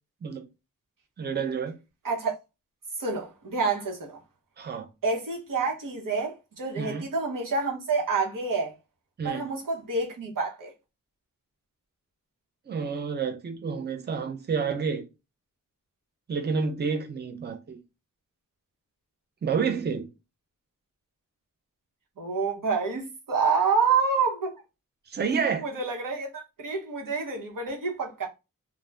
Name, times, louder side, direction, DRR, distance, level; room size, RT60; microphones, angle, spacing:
voice 1, 1.2-1.8 4.6-4.9 6.8-7.1 9.2-9.5 12.7-15.0 16.3-17.8 19.4-20.1 25.1-25.6, right 5 dB, 30° right, 0.5 m, -29 dB
voice 2, 3.0-4.2 5.0-8.7 9.2-10.7 22.2-24.6 25.6-28.3, right 4 dB, 80° right, 0.9 m, -28 dB
2.4 x 2.1 x 3.2 m
wide cardioid pair, 120°, 32 cm